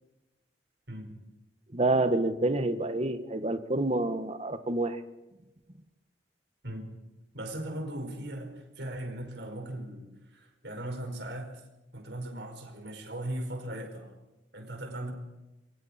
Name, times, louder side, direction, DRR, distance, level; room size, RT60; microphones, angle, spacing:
voice 1, 0.9-1.2 6.6-6.9 7.3-11.6 11.9-14.1 14.5-15.1, right 1 dB, 70° right, 4 dB, 5.2 m, -38 dB
voice 2, 1.7-5.0, right 2 dB, 35° right, 9 dB, 1.6 m, -28 dB
27.5 x 24.0 x 4.5 m, 1.0 s
head